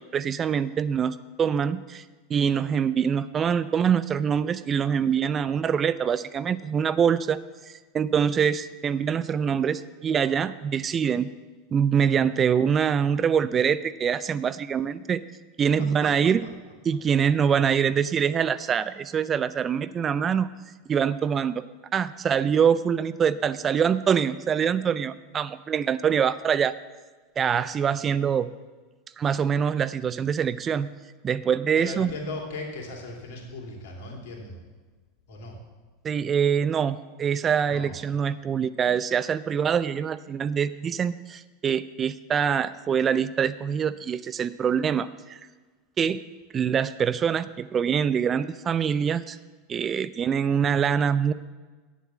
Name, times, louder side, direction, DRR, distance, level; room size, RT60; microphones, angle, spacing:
voice 1, 0.0-2.0 2.3-7.4 7.7-11.3 11.7-15.2 15.6-16.4 16.8-20.5 20.9-21.6 21.9-26.7 27.4-28.5 29.2-30.9 31.2-32.1 36.0-45.4 46.0-46.2 46.5-49.4 49.7-51.3, right 7 dB, 30° right, 16 dB, 0.4 m, -24 dB
voice 2, 31.7-34.6 35.3-35.6 37.7-37.9, left 2 dB, 65° left, 1 dB, 2.8 m, -37 dB
9.3 x 7.5 x 7.3 m, 1.3 s
hypercardioid pair, 85°, 0 cm